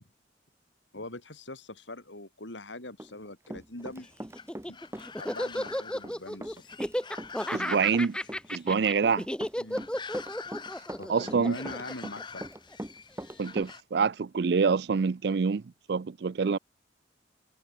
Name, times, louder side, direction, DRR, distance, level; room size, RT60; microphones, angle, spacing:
voice 1, 0.9-4.1 4.7-4.8 5.2-6.6 9.6-9.9 11.0-12.5, left 2 dB, 85° left, 4.6 m, -42 dB
Run, 3.0-4.7 4.9-13.7, right 1 dB, 15° right, 1.2 m, -41 dB
sound 1, 3.8-13.8, left 5 dB, 25° left, 2.0 m, -46 dB
Laughter, 4.3-12.8, equal, 5° left, 0.9 m, -33 dB
voice 2, 7.5-8.2 8.5-9.3 11.1-11.6 13.4-15.6 15.9-16.6, right 5 dB, 60° right, 0.4 m, -26 dB
head